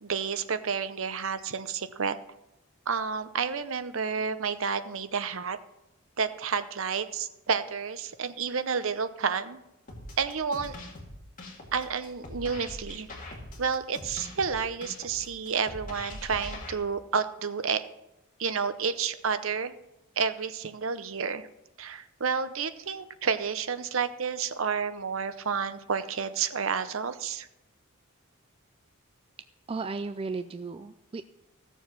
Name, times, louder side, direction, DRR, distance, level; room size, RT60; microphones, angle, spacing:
voice 1, 0.0-2.2 2.9-5.6 6.2-9.6 10.2-10.7 11.7-13.1 13.6-17.8 18.4-19.7 20.2-21.5 21.8-27.5, right 6 dB, 65° right, 12 dB, 0.7 m, -30 dB
sound 1, 9.9-16.7, left 1 dB, 40° left, 2.4 m, -42 dB
voice 2, 29.7-31.2, right 4 dB, 25° right, 11 dB, 0.3 m, -35 dB
15.5 x 7.1 x 6.0 m, 0.90 s
head